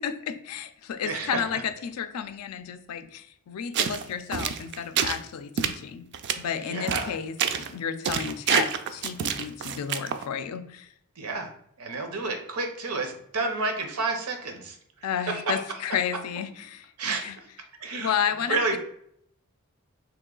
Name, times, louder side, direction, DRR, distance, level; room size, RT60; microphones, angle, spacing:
voice 1, 0.0-6.0 6.4-10.9 15.0-17.4 18.0-18.8, left 8 dB, 90° left, 10 dB, 0.4 m, -32 dB
voice 2, 1.0-1.4 6.6-7.1 11.2-11.5 11.8-14.8 15.3-15.6 17.0-17.3 17.8-18.2 18.5-18.8, right 3 dB, 80° right, 4 dB, 0.7 m, -30 dB
sound 1, 3.7-4.0 4.3-5.2 5.6-5.7 6.1-6.3 6.9-7.1 7.4-7.7 8.0-10.2, right 7 dB, 50° right, 0.3 m, -27 dB
3.0 x 3.0 x 3.7 m, 0.69 s
head